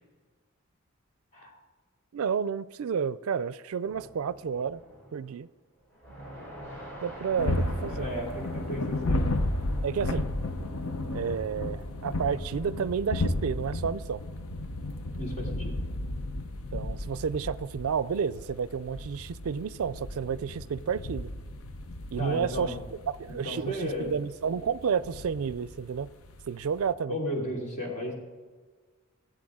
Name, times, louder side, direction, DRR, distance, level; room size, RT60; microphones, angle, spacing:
voice 1, 2.1-4.8 5.1-5.5 7.0-8.1 9.8-10.3 11.1-14.2 16.7-21.3 22.1-22.8 23.1-26.1 26.5-27.2, right 6 dB, 85° right, 17 dB, 0.4 m, -31 dB
sound 1, 3.8-5.4 5.8-22.2, equal, 10° left, 3.4 m, -49 dB
sound 2, 7.4-26.9, left 1 dB, 80° left, 0.7 m, -34 dB
voice 2, 7.8-9.3 15.2-15.8 22.2-22.8 23.4-24.1 27.1-28.1, left 1 dB, 35° left, -2 dB, 2.8 m, -34 dB
15.5 x 8.2 x 3.7 m, 1.4 s
head